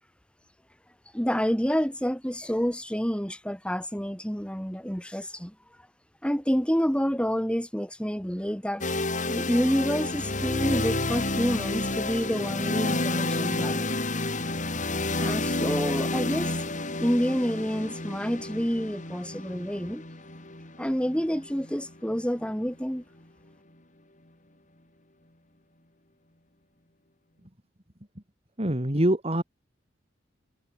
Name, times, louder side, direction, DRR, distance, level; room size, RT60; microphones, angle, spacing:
voice 1, 1.1-5.5 6.2-8.8 9.3-13.9 15.2-16.5 17.0-20.0 20.8-23.0, equal, 5° left, 4.1 m, -28 dB
sound 1, 8.8-22.7, left 2 dB, 40° left, 6.4 m, -30 dB
voice 2, 28.6-29.4, right 1 dB, 30° right, 3.2 m, -24 dB
head